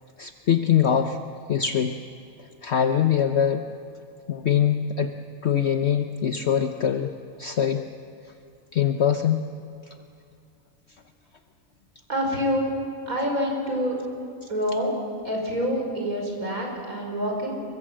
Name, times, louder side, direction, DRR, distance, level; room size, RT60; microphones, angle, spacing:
voice 1, 0.2-1.2 1.5-2.0 2.6-3.7 4.3-5.1 5.4-7.1 7.4-7.8 8.7-9.4 14.4-14.5, left 9 dB, 55° left, 6 dB, 1.1 m, -23 dB
voice 2, 12.1-12.7 13.1-14.0 14.5-15.0 15.2-17.6, equal, 85° right, 0 dB, 5.8 m, -26 dB
28.0 x 24.0 x 7.6 m, 2.4 s
omnidirectional pair, 1.5 m